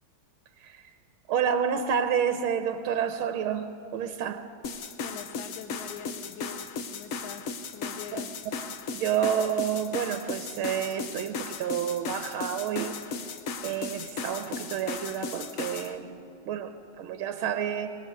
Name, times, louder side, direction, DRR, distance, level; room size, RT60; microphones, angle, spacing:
voice 1, 0.6-1.0 1.3-4.5 8.1-8.2 8.9-13.3 13.6-18.0, right 8 dB, 85° right, 8 dB, 1.6 m, -30 dB
sound 1, 4.6-15.9, left 4 dB, 55° left, 0.9 m, -36 dB
voice 2, 5.0-8.4, left 8 dB, 75° left, 11 dB, 1.6 m, -43 dB
24.0 x 18.0 x 6.6 m, 2.9 s
omnidirectional pair, 2.3 m